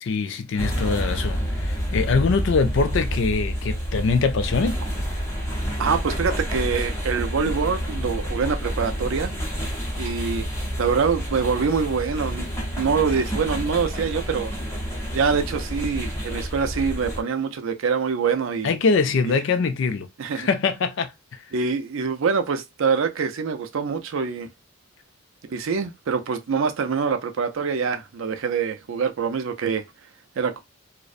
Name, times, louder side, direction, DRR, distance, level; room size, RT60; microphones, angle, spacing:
voice 1, 0.0-4.8 18.6-20.1 20.3-21.4, left 4 dB, 55° left, 0.4 m, -23 dB
sound 1, 0.6-17.2, equal, 15° left, 0.6 m, -28 dB
voice 2, 5.8-9.4 10.0-10.5 10.8-12.5 12.8-14.5 15.1-18.7 20.2-20.5 21.5-24.5 25.5-29.8 30.4-30.6, right 5 dB, 65° right, 0.4 m, -25 dB
2.5 x 2.0 x 2.4 m
head